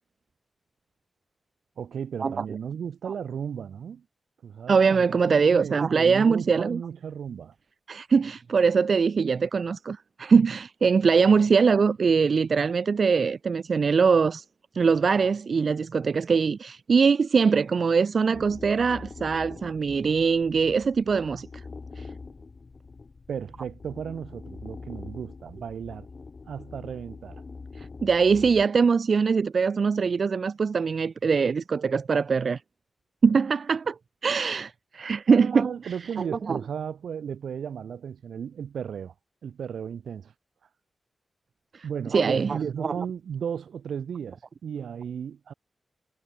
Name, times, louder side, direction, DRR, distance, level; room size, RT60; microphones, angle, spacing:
voice 1, 1.8-4.0 4.4-7.5 23.3-26.1 26.5-27.4 35.3-39.1 39.4-40.3 41.8-45.5, right 7 dB, 90° right, 1.9 m, -35 dB
voice 2, 4.7-6.8 7.9-14.4 14.7-21.5 22.0-22.1 27.8-32.6 33.2-34.0 34.2-36.6 41.7-42.9, right 5 dB, 60° right, 0.4 m, -22 dB
sound 1, 18.3-28.7, left 4 dB, 45° left, 4.4 m, -44 dB
cardioid pair, 80°, 0 cm